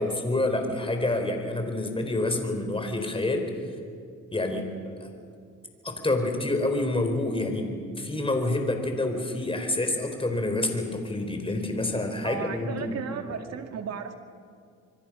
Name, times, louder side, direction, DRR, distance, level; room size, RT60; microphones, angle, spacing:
voice 1, 0.0-3.5 4.3-5.1 5.8-13.0, left 2 dB, 20° left, 5 dB, 4.3 m, -28 dB
voice 2, 12.2-14.1, right 7 dB, 60° right, 6 dB, 2.2 m, -35 dB
26.0 x 23.5 x 6.2 m, 2.2 s
cardioid pair, 90°, 30 cm